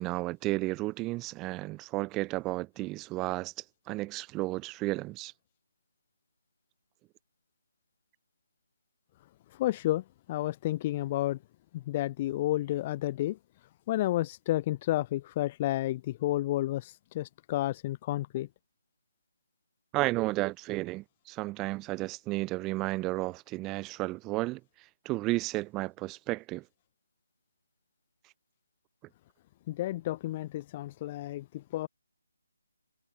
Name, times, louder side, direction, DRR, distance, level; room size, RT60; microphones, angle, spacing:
voice 1, 0.0-3.5 3.9-5.3 19.9-24.6 25.0-26.6, right 20 dB, 15° right, 1.0 m, -32 dB
voice 2, 9.6-11.4 11.7-13.4 13.9-18.5 29.7-31.9, left 15 dB, 25° left, 0.9 m, -31 dB
figure-of-eight pair, 155°, 0 cm